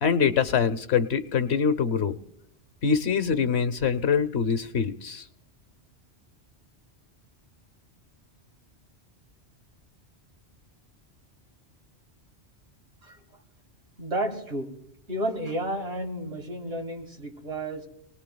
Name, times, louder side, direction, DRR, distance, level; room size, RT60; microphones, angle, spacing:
voice 1, 0.0-2.1 2.8-5.2, left 6 dB, 70° left, 13 dB, 1.2 m, -24 dB
voice 2, 14.0-14.7 15.1-17.9, right 1 dB, 75° right, 1 dB, 3.7 m, -31 dB
26.5 x 20.0 x 2.3 m, 0.75 s
omnidirectional pair, 1.1 m